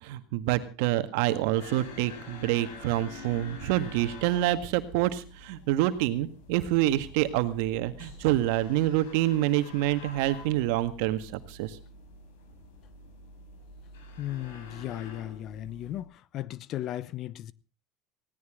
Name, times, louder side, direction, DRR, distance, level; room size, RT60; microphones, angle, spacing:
voice 1, 0.0-11.8, right 14 dB, 75° right, 1.8 m, -27 dB
sound 1, 1.6-16.0, left 2 dB, 85° left, 5.8 m, -47 dB
voice 2, 14.2-17.5, left 13 dB, 50° left, 0.9 m, -36 dB
19.5 x 17.0 x 3.8 m
supercardioid pair, 110°, 0 cm